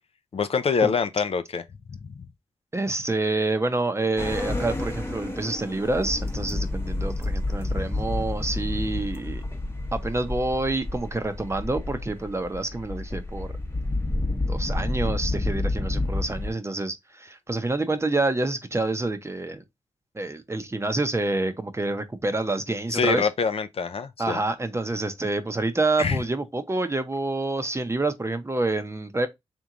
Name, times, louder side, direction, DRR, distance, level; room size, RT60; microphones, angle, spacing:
voice 1, 0.3-2.2 22.9-24.4 26.0-26.2, left 5 dB, 60° left, 0.5 m, -25 dB
voice 2, 2.7-9.4 9.9-13.5 14.5-19.6 20.1-23.3 24.2-29.3, right 2 dB, 25° right, 0.8 m, -27 dB
sound 1, 4.2-16.5, left 2 dB, 20° left, 1.0 m, -29 dB
3.6 x 3.0 x 3.8 m
cardioid pair, 60°, 11 cm